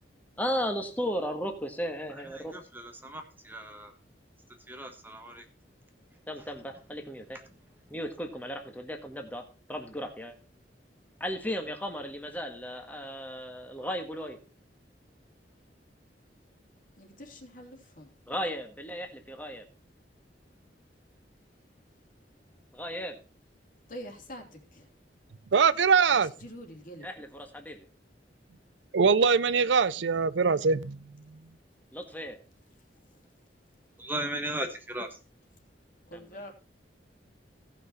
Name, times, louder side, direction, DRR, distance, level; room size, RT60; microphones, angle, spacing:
voice 1, 0.4-2.5 6.3-7.4 7.9-10.3 11.2-14.4 18.3-19.7 22.7-23.2 27.0-27.9 31.9-32.4 36.1-36.4, equal, 10° left, 1.7 m, -35 dB
voice 2, 2.1-3.9 4.7-5.4 34.0-35.2, right 1 dB, 10° right, 1.3 m, -37 dB
voice 3, 17.0-18.1 23.9-24.9 26.1-27.1 36.1-36.5, equal, 50° left, 2.7 m, -45 dB
voice 4, 25.5-26.3 28.9-31.0, right 5 dB, 85° right, 0.6 m, -22 dB
17.0 x 5.9 x 4.2 m
head